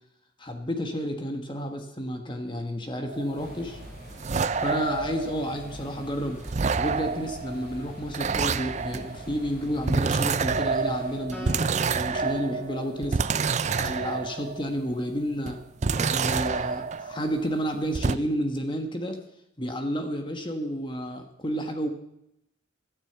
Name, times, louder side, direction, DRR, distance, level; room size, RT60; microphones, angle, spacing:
voice 1, 0.4-3.8 4.6-6.4 6.8-11.5 11.8-13.2 13.7-15.6 16.0-19.2 19.6-21.9, equal, 25° left, 5 dB, 1.5 m, -31 dB
sound 1, 3.1-6.0 6.4-14.9 15.5-17.6 17.9-18.2, right 5 dB, 35° right, 0.5 m, -28 dB
sound 2, 3.4-11.2, equal, 50° left, 6.3 m, -44 dB
Acoustic guitar, 11.3-14.8, left 2 dB, 10° left, 3.3 m, -44 dB
13.0 x 9.9 x 8.0 m, 0.81 s
head